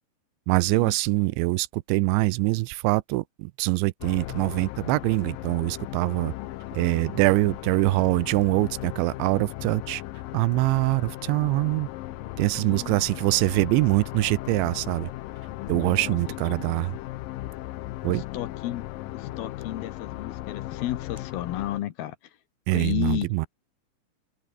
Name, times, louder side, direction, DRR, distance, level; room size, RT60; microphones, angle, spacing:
voice 1, 0.5-6.3 6.7-10.0 10.3-11.9 12.4-15.1 15.7-16.9 18.0-18.2 22.7-23.5, right 22 dB, 85° right, 2.9 m, -24 dB
sound 1, 4.0-21.8, left 16 dB, 85° left, 1.9 m, -37 dB
voice 2, 12.1-13.1 15.5-16.4 18.1-18.9 19.1-22.4 22.7-23.3, left 13 dB, 70° left, 2.8 m, -34 dB
omnidirectional pair, 5.2 m